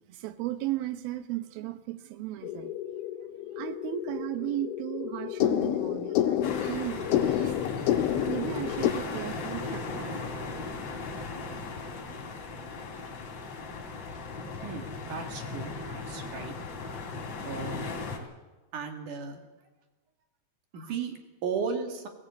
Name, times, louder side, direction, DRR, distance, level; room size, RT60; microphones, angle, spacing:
voice 1, 0.1-2.7 3.6-10.5, right 14 dB, 80° right, 2.8 m, -36 dB
sound 1, 2.4-8.9, left 11 dB, 80° left, 3.0 m, -29 dB
sound 2, 6.4-18.2, left 3 dB, 50° left, 3.8 m, -37 dB
voice 2, 14.6-16.5 17.4-17.8 18.7-19.4 20.7-22.1, right 5 dB, 60° right, 3.4 m, -35 dB
20.5 x 15.5 x 8.4 m
omnidirectional pair, 4.3 m